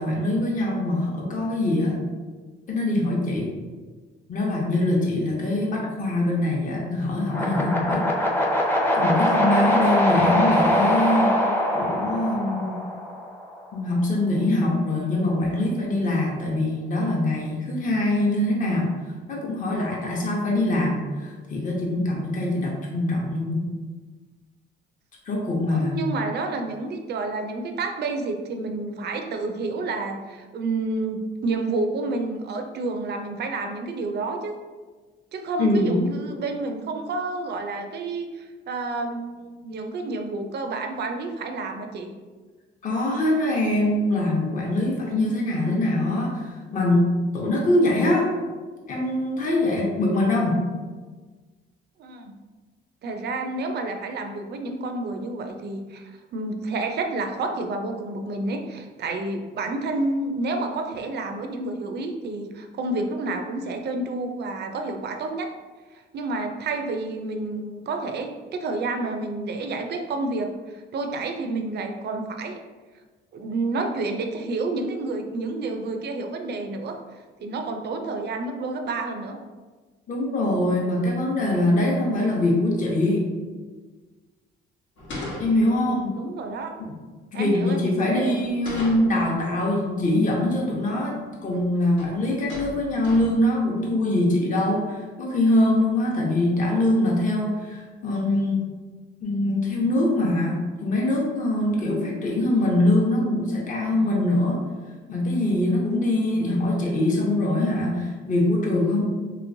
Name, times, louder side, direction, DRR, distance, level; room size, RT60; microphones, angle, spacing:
voice 1, 0.0-2.0 2.7-3.5 4.3-8.1 8.5-8.6 8.9-12.8 13.7-19.0 19.3-23.7 25.2-26.1 35.6-36.0 42.8-48.3 48.9-50.6 80.1-83.3 85.4-86.1 86.8-87.0 87.3-98.7 99.2-104.6 105.1-109.0, left 1 dB, 40° left, -2 dB, 0.8 m, -23 dB
sound 1, 7.3-13.4, left 1 dB, 10° left, 0.6 m, -22 dB
voice 2, 25.7-34.5 35.3-42.1 52.0-52.4 53.0-65.5 65.9-72.6 73.3-77.0 77.4-79.4 85.6-86.7 87.3-88.4, right 3 dB, 55° right, 5 dB, 0.5 m, -29 dB
sound 2, 85.0-86.0 88.3-89.3 91.0-91.1 91.4-91.7 91.9-92.2 92.5-93.5, left 1 dB, 75° left, 1.0 m, -37 dB
3.0 x 3.0 x 2.6 m, 1.4 s
cardioid pair, 90°, 20 cm